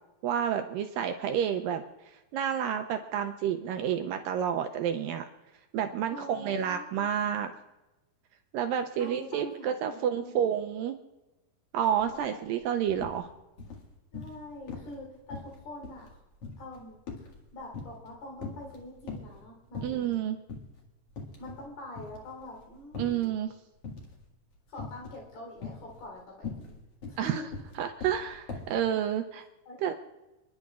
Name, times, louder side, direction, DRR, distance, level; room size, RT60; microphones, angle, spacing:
voice 1, 0.2-5.3 5.7-7.5 8.5-11.0 11.7-13.3 19.8-20.4 23.0-23.5 27.2-27.4 27.8-29.5 29.8-29.9, right 9 dB, 80° right, 6 dB, 2.1 m, -30 dB
voice 2, 6.1-7.1 9.0-10.5 12.1-12.5 14.1-16.1 16.6-17.0 17.5-20.1 21.4-23.3 24.7-26.8 27.0-27.4 29.7-30.0, left 1 dB, 75° left, -1 dB, 5.6 m, -45 dB
sound 1, 12.0-12.2 12.5-13.2 13.6-14.4 14.7-15.0 15.3-18.1 18.4-19.4 19.7-20.2 20.5-20.7 21.1-21.7 21.9-23.3 23.8-24.2 24.8-25.2 25.6-28.8, left 4 dB, 45° left, 2.3 m, -41 dB
30.0 x 10.5 x 2.4 m, 1.0 s
omnidirectional pair, 4.5 m